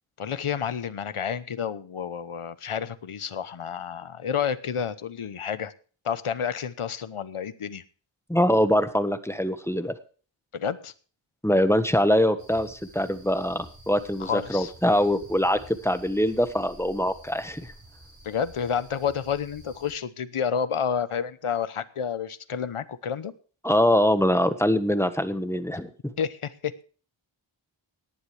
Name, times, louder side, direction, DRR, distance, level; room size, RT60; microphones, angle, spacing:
voice 1, 0.2-5.7 6.0-7.8 10.5-10.9 14.2-14.7 18.2-23.3 26.2-26.9, left 7 dB, 85° left, 15 dB, 1.0 m, -30 dB
voice 2, 8.3-9.9 11.4-17.7 23.6-25.9, equal, 5° left, 10 dB, 1.4 m, -23 dB
sound 1, 12.4-19.9, right 1 dB, 45° right, 6.8 m, -50 dB
18.0 x 11.0 x 3.4 m, 0.39 s
wide cardioid pair, 55°, 49 cm